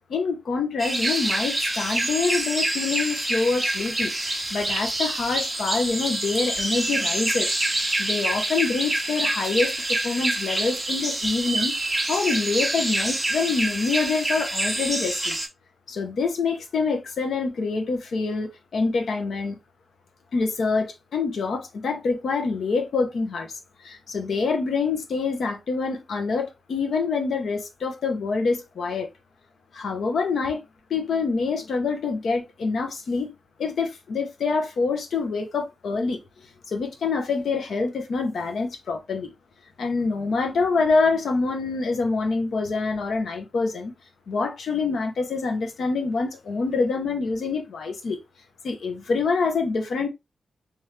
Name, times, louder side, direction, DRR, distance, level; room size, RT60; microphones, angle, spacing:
voice 1, 0.0-7.5 8.0-11.7 12.1-15.4 15.9-19.6 20.3-23.5 23.8-29.1 29.7-30.6 30.9-33.3 33.6-36.2 36.7-39.3 39.8-43.9 44.3-48.2 48.6-50.1, left 4 dB, 80° left, 0.9 m, -26 dB
sound 1, 0.8-15.5, right 1 dB, 10° right, 1.2 m, -26 dB
3.5 x 3.3 x 3.2 m
wide cardioid pair, 105°, 0 cm